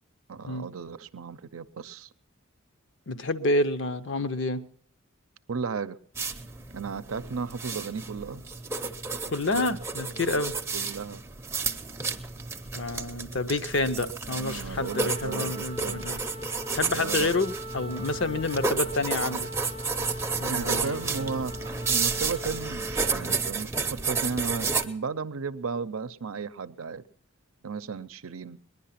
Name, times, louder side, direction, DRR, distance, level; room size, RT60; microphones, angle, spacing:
voice 1, 0.3-2.1 5.5-6.0 6.7-8.4 10.7-11.2 14.3-16.1 16.9-17.3 20.5-21.5 21.9-27.0 27.6-28.6, right 5 dB, 90° right, 13 dB, 0.6 m, -34 dB
voice 2, 3.1-4.6 9.3-10.5 12.7-16.2 16.7-19.5 20.4-21.0, left 2 dB, 60° left, 10 dB, 0.7 m, -28 dB
sound 1, 6.1-24.8, right 4 dB, 15° right, 0.6 m, -32 dB
sound 2, 14.7-23.2, equal, 25° left, 0.6 m, -41 dB
20.0 x 11.0 x 5.8 m, 0.62 s
head